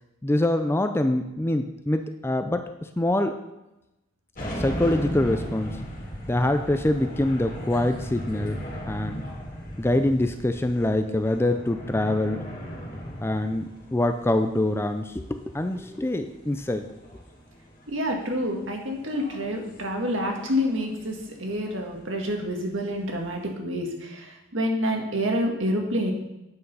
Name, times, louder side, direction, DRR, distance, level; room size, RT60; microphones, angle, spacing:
voice 1, 0.2-2.6 3.0-3.4 4.6-5.7 6.3-9.2 9.8-12.4 13.2-16.8, left 1 dB, 10° left, 7 dB, 0.4 m, -25 dB
sound 1, 4.3-23.5, equal, 40° left, 2.3 m, -38 dB
voice 2, 17.9-26.1, equal, 65° right, 1 dB, 1.9 m, -28 dB
8.9 x 6.7 x 5.5 m, 0.94 s
head